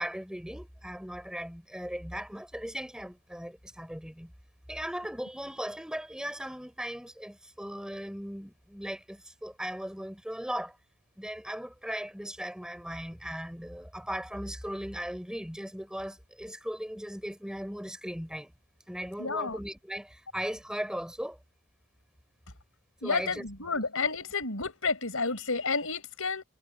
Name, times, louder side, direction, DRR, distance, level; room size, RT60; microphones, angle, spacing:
voice 1, 0.0-4.3 4.7-10.8 11.2-18.5 18.9-21.4 23.0-23.5, equal, 5° right, 4.4 m, -38 dB
voice 2, 19.2-19.6 23.0-26.4, left 4 dB, 70° left, 6.4 m, -30 dB
head